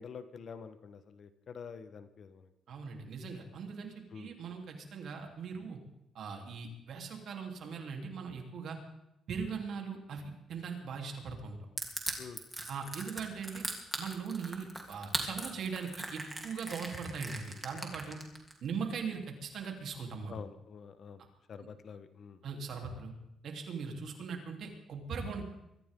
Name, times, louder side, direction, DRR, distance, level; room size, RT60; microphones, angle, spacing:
voice 1, 0.0-2.5 4.1-4.3 12.2-12.4 20.3-22.4, left 6 dB, 55° left, 11 dB, 1.2 m, -47 dB
voice 2, 2.7-5.8 6.2-8.8 9.3-11.6 12.7-13.7 14.0-18.2 18.6-20.4 22.4-23.1 23.4-25.4, right 5 dB, 65° right, 2 dB, 3.4 m, -40 dB
Crushing, 11.8-18.5, right 2 dB, 15° right, 3.3 m, -39 dB
23.5 x 15.0 x 3.8 m, 0.86 s
cardioid pair, 90°, 0 cm